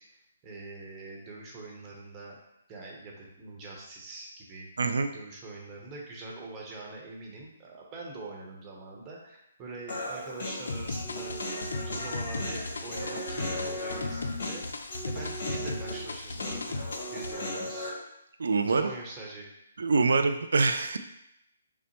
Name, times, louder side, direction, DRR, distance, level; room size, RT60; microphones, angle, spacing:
voice 1, 0.4-2.4 2.7-16.8 17.1-17.9 18.7-19.5, right 2 dB, 25° right, -2 dB, 0.9 m, -44 dB
voice 2, 4.8-5.1 18.4-18.9 19.8-21.0, right 4 dB, 75° right, 8 dB, 0.3 m, -25 dB
Human voice, 9.9-17.9, left 1 dB, 60° left, 1.2 m, -37 dB
sound 1, 10.7-17.3, left 2 dB, 80° left, 0.4 m, -37 dB
5.9 x 2.0 x 3.0 m, 0.82 s
hypercardioid pair, 145°, 0 cm